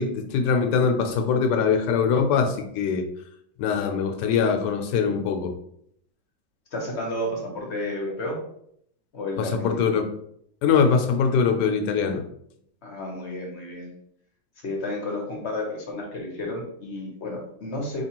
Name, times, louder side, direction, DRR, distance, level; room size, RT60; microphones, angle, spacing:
voice 1, 0.0-3.0 3.6-5.5 9.4-10.1 10.6-12.2, left 6 dB, 75° left, 5 dB, 1.2 m, -22 dB
voice 2, 6.7-8.4 9.1-9.9 12.8-13.9 14.6-18.1, left 1 dB, 50° left, 0 dB, 0.9 m, -31 dB
4.8 x 2.9 x 2.9 m, 0.71 s
omnidirectional pair, 1.9 m